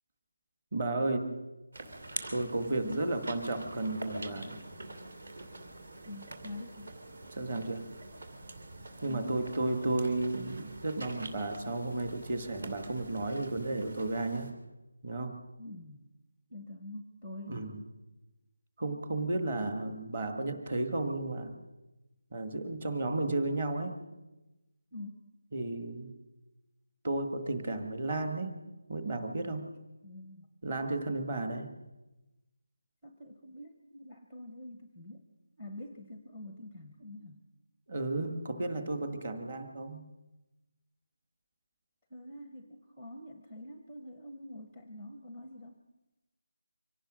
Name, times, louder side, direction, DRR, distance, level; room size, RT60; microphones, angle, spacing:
voice 1, 0.7-1.4 2.3-4.6 7.3-7.9 9.0-14.5 15.0-15.4 17.4-17.8 18.8-21.5 22.3-24.0 25.5-26.1 27.0-28.6 28.9-29.7 30.6-31.7 37.9-40.1, right 2 dB, 20° right, 8 dB, 1.6 m, -33 dB
sound 1, 1.7-14.5, right 2 dB, 40° right, 3.0 m, -46 dB
voice 2, 6.1-6.9 9.1-9.4 15.6-16.0 16.5-17.7 24.9-25.2 30.0-30.5 33.0-35.3 35.6-37.4 42.1-45.8, left 1 dB, ahead, 5 dB, 0.8 m, -45 dB
24.5 x 17.0 x 6.3 m, 1.0 s
figure-of-eight pair, 180°, 0 cm